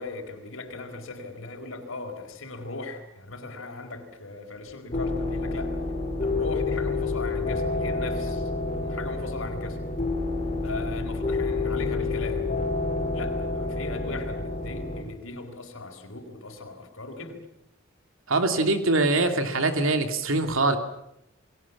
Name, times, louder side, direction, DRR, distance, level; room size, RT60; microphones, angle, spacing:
voice 1, 0.0-5.8 6.2-8.5 8.8-9.8 10.6-12.6 13.1-17.4, left 3 dB, 75° left, 3 dB, 4.5 m, -38 dB
sound 1, 4.9-15.0, left 3 dB, 35° left, 5.0 m, -28 dB
voice 2, 18.3-20.8, right 2 dB, 75° right, 6 dB, 2.8 m, -23 dB
29.5 x 22.0 x 7.4 m, 0.80 s
head